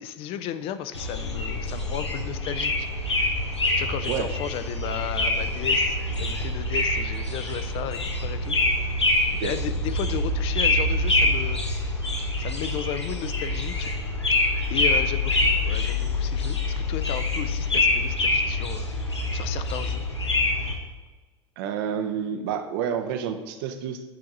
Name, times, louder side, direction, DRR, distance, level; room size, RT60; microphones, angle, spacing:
voice 1, 0.0-2.9 3.8-8.6 9.4-11.6 12.4-13.9 14.7-18.9 19.3-20.0, left 10 dB, 40° left, 12 dB, 0.5 m, -34 dB
sound 1, 0.9-20.8, left 2 dB, 85° left, 0.9 m, -25 dB
voice 2, 21.6-24.0, right 8 dB, 55° right, 8 dB, 0.7 m, -29 dB
7.6 x 4.7 x 5.3 m, 1.3 s
figure-of-eight pair, 70°, 14 cm